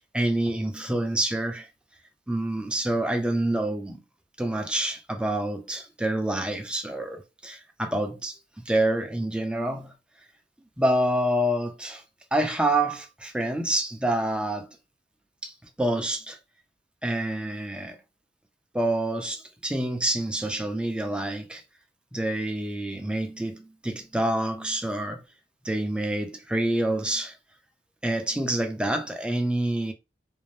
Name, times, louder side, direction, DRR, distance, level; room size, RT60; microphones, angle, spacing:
voice 1, 0.1-1.7 2.3-4.0 4.4-9.9 10.8-12.0 12.3-14.8 15.4-16.4 17.0-18.0 18.7-21.6 22.1-25.2 25.6-27.4 28.0-29.9, right 1 dB, 5° right, 0.5 m, -27 dB
2.6 x 2.0 x 3.2 m
head